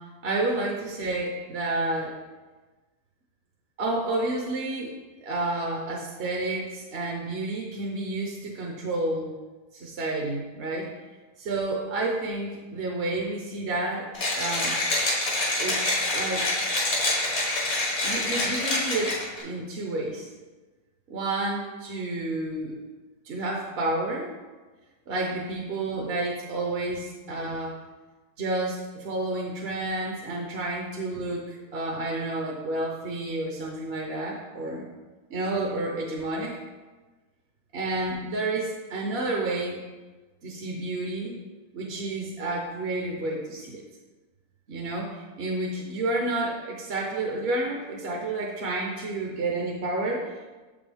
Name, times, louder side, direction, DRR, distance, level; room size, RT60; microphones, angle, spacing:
voice 1, 0.2-2.1 3.8-4.9 5.2-9.4 9.7-10.9 11.4-14.1 14.4-14.7 15.6-16.5 18.0-20.3 21.1-22.8 23.2-24.3 25.1-27.8 28.4-34.8 35.3-36.6 37.7-39.8 40.4-41.4 41.7-43.8 44.7-50.5, right 2 dB, 50° right, -1 dB, 0.9 m, -30 dB
Mechanisms, 14.1-19.4, left 2 dB, 75° left, 1.8 m, -26 dB
6.7 x 5.2 x 3.4 m, 1.2 s
omnidirectional pair, 1.5 m